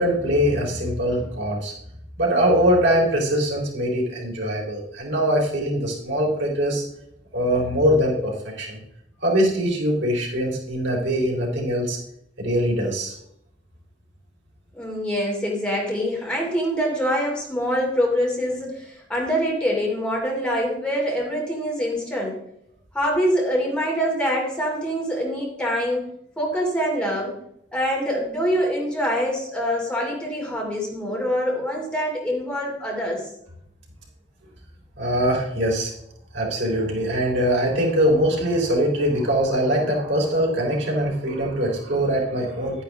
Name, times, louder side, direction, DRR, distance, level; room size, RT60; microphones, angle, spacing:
voice 1, 0.0-1.7 2.2-6.8 7.3-8.3 8.6-8.8 9.2-12.0 12.4-13.1 35.0-35.9 36.3-42.8, equal, 75° right, -2 dB, 3.8 m, -22 dB
voice 2, 14.7-22.4 22.9-26.0 26.4-27.4 27.7-33.2, equal, 5° left, -3 dB, 2.9 m, -25 dB
11.0 x 9.9 x 3.6 m, 0.74 s
head